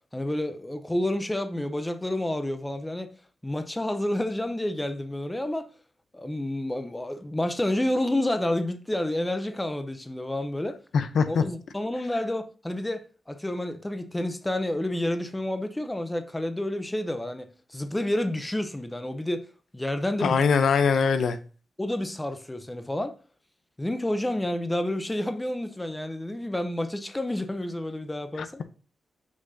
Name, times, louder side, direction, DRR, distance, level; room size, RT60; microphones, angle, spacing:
voice 1, 0.1-3.1 3.4-5.7 6.1-10.8 11.2-19.5 19.7-20.4 21.8-23.1 23.8-28.6, left 1 dB, 10° left, 0.6 m, -29 dB
voice 2, 10.9-11.4 20.2-21.4 28.4-28.6, left 6 dB, 80° left, 0.6 m, -22 dB
6.2 x 5.8 x 2.7 m
wide cardioid pair, 155°, 0 cm